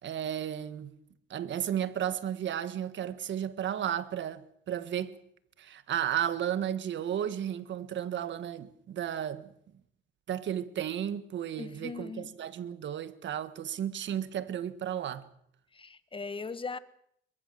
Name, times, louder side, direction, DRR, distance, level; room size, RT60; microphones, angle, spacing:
voice 1, 0.0-0.9 1.3-5.1 5.6-9.5 10.3-15.3, right 10 dB, 65° right, 1.6 m, -33 dB
voice 2, 11.6-12.3 15.7-16.8, left 4 dB, 25° left, 1.4 m, -39 dB
22.5 x 22.0 x 6.7 m
cardioid pair, 90°, 20 cm